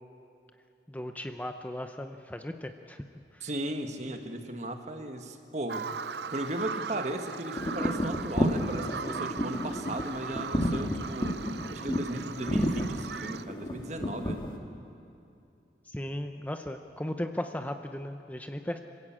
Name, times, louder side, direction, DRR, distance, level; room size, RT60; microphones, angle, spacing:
voice 1, 0.9-3.0 3.3-3.5 15.8-18.8, left 1 dB, 10° left, 6 dB, 0.7 m, -36 dB
voice 2, 3.4-5.9 6.3-11.4 11.7-14.4, right 1 dB, 40° right, 6 dB, 1.6 m, -36 dB
Bird vocalization bird call bird song, 5.7-13.4, right 6 dB, 70° right, 0.6 m, -39 dB
sound 1, 7.5-14.6, equal, 30° left, 1.8 m, -31 dB
26.0 x 16.5 x 8.7 m, 2.6 s
head